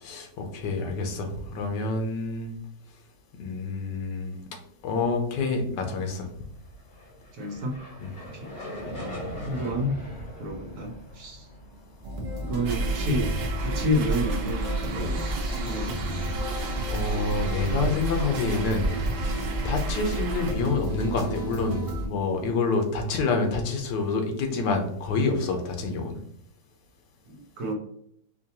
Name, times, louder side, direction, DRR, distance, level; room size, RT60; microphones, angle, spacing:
voice 1, 0.0-2.5 3.4-4.3 4.8-6.3 8.0-8.1 16.5-26.2, left 3 dB, 80° left, 4 dB, 1.4 m, -28 dB
sound 1, 6.6-15.1, equal, 55° left, 2.0 m, -41 dB
voice 2, 7.3-7.8 8.2-8.5 8.9-9.9 10.4-11.5 12.4-15.2 15.6-16.2 27.3-27.7, equal, 65° right, 2 dB, 1.3 m, -30 dB
sound 2, 12.0-22.1, right 1 dB, 40° right, 0.4 m, -33 dB
sound 3, 12.7-20.5, right 3 dB, 85° right, 1.2 m, -31 dB
4.8 x 2.3 x 2.8 m, 0.67 s
omnidirectional pair, 1.8 m